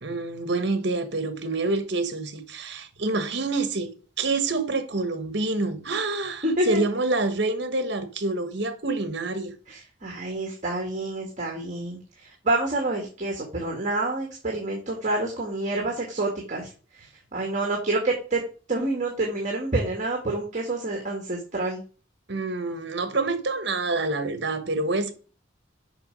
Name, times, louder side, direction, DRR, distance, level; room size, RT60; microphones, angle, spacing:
voice 1, 0.0-3.9 4.2-9.5 22.3-25.1, right 3 dB, 65° right, 1.3 m, -27 dB
voice 2, 6.4-6.8 9.7-18.4 18.7-21.8, right 2 dB, 40° right, 1.8 m, -28 dB
6.9 x 5.6 x 5.3 m
head